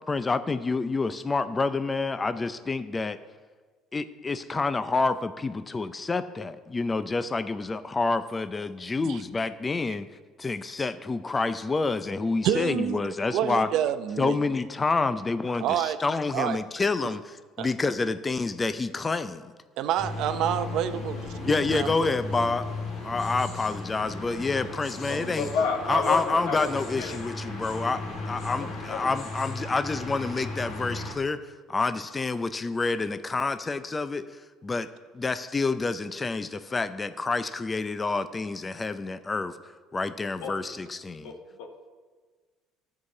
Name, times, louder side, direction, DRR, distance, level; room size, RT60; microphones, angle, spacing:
voice 1, 0.1-3.2 3.9-10.1 10.4-13.7 14.2-19.5 21.4-22.7 23.0-25.5 25.9-34.9 35.1-39.6 39.9-41.3, left 3 dB, 20° left, 12 dB, 0.5 m, -28 dB
voice 2, 12.4-14.4 15.6-16.0 16.3-16.6 17.6-17.7 19.8-22.1, right 10 dB, 65° right, 11 dB, 0.6 m, -28 dB
sound 1, 20.0-31.1, left 2 dB, 55° left, 2.3 m, -36 dB
voice 3, 25.1-27.2 28.9-29.0 40.4-40.7 41.2-41.9, left 5 dB, 85° left, 3 dB, 1.6 m, -31 dB
12.5 x 4.8 x 7.1 m, 1.4 s
supercardioid pair, 100°, 0 cm